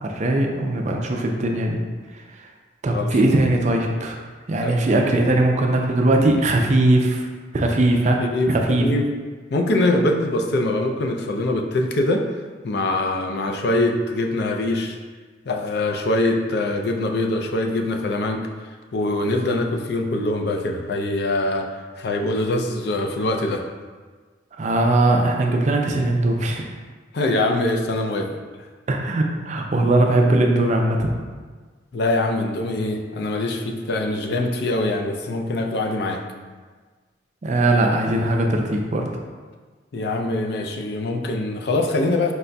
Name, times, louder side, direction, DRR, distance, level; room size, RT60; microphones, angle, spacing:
voice 1, 0.0-1.8 2.1-2.2 2.8-4.2 4.5-7.3 7.5-8.2 8.5-8.9 24.6-26.7 28.9-31.1 37.4-39.1, right 2 dB, 40° right, 2 dB, 0.4 m, -20 dB
voice 2, 2.9-3.3 4.6-5.1 8.2-9.1 9.5-12.3 12.6-15.0 15.5-21.7 22.0-23.6 27.1-28.4 31.9-36.3 39.9-42.3, left 2 dB, 60° left, 3 dB, 0.4 m, -23 dB
4.7 x 4.0 x 2.2 m, 1.4 s
head